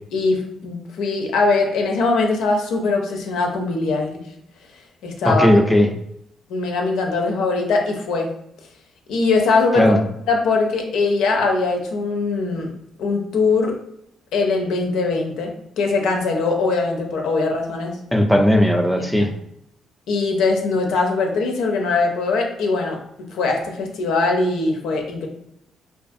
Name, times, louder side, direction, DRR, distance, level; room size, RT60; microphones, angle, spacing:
voice 1, 0.1-4.2 5.0-5.5 6.5-8.3 9.1-9.9 10.3-12.7 13.0-13.7 14.3-18.0 18.9-19.3 20.1-25.3, left 3 dB, 85° left, 2 dB, 0.5 m, -21 dB
voice 2, 5.2-5.9 9.8-10.0 18.1-19.3, left 1 dB, ahead, 4 dB, 0.3 m, -16 dB
2.4 x 2.4 x 2.5 m, 0.77 s
cardioid pair, 90°, 0 cm